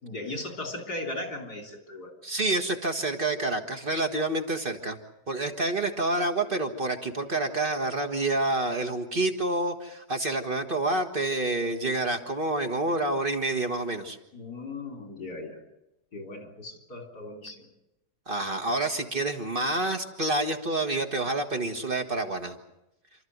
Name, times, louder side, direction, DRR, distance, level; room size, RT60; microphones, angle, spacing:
voice 1, 0.0-2.1 14.3-15.6 16.1-17.7, left 2 dB, 90° left, 4 dB, 4.0 m, -37 dB
voice 2, 2.2-5.0 5.3-14.2 18.3-22.6, right 2 dB, 35° right, 5 dB, 1.7 m, -28 dB
28.5 x 13.5 x 9.4 m, 0.89 s
omnidirectional pair, 1.7 m